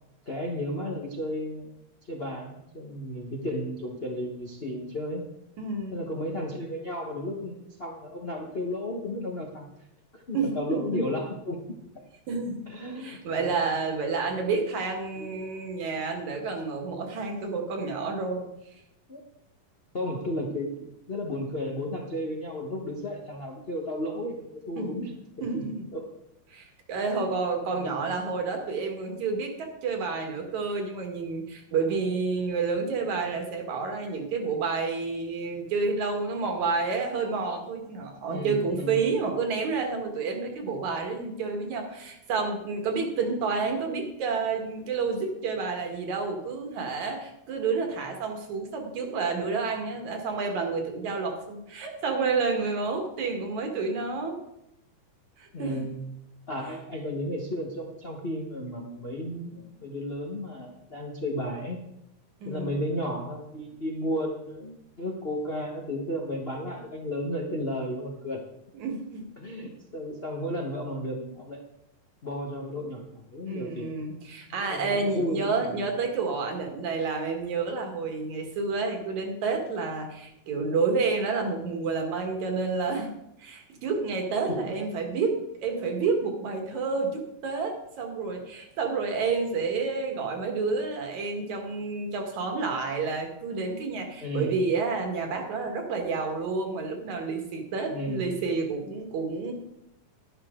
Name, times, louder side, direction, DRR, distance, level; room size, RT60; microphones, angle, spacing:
voice 1, 0.3-1.7 2.1-5.2 5.9-9.6 10.1-11.6 12.7-13.6 15.2-15.5 19.1-19.2 19.9-20.7 21.1-25.1 25.4-25.6 25.9-26.0 27.7-28.2 38.3-39.1 55.5-56.0 56.5-61.8 62.4-68.4 69.4-71.6 72.2-74.0 74.5-75.8 94.2-94.5 97.9-98.4, left 1 dB, 70° left, -1 dB, 0.5 m, -33 dB
voice 2, 5.6-6.0 10.3-11.0 12.3-12.6 13.0-18.5 24.8-25.0 25.4-25.9 26.5-54.4 55.4-55.9 62.4-62.7 68.7-69.3 73.5-83.1 83.4-99.5, right 4 dB, 70° right, 3 dB, 3.0 m, -29 dB
12.0 x 11.5 x 3.7 m, 0.83 s
omnidirectional pair, 3.5 m